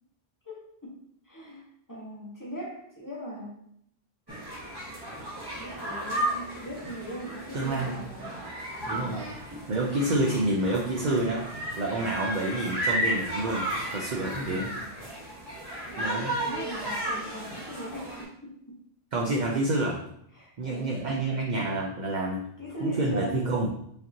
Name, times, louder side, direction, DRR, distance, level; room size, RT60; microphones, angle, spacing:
voice 1, 0.4-3.6 5.5-8.4 14.4-14.9 15.9-18.8 20.3-21.2 22.6-23.5, right 1 dB, 20° left, -4 dB, 1.1 m, -40 dB
sound 1, 4.3-18.2, right 1 dB, 25° right, 1.2 m, -34 dB
voice 2, 7.5-8.0 8.9-9.3 9.7-11.5 11.8-14.7 16.0-16.3 19.1-20.0 20.6-22.4 22.8-23.7, right 2 dB, 50° right, -1 dB, 0.6 m, -28 dB
5.1 x 2.9 x 2.7 m, 0.71 s
omnidirectional pair, 1.1 m